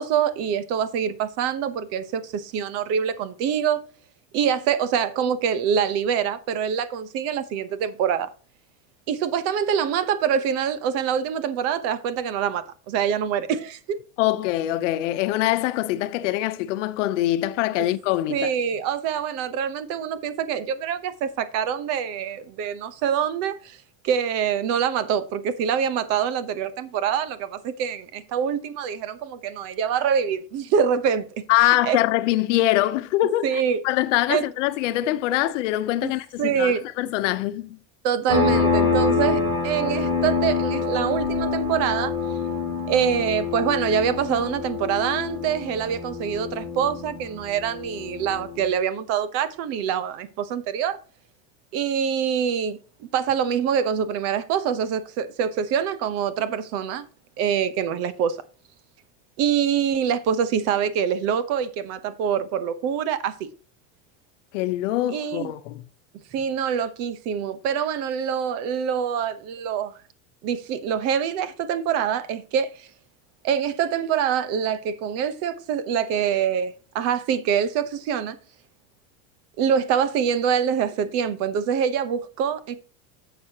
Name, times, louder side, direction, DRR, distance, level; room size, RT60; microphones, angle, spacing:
voice 1, 0.0-3.8 4.3-8.3 9.1-14.0 18.3-23.8 24.0-31.2 31.6-32.0 33.4-33.8 34.3-34.5 36.0-36.1 36.4-36.8 38.0-42.1 42.9-51.0 51.7-57.0 57.4-58.4 59.4-63.5 65.1-65.5 66.3-69.9 70.4-72.9 73.4-78.4 79.6-82.8, right 8 dB, 40° right, 0.9 m, -25 dB
voice 2, 14.2-18.5 31.5-37.8 64.5-65.8, left 15 dB, 80° left, 0.9 m, -23 dB
sound 1, 38.3-48.6, left 4 dB, 15° right, 3.7 m, -26 dB
11.0 x 7.1 x 2.9 m
supercardioid pair, 170°, 36 cm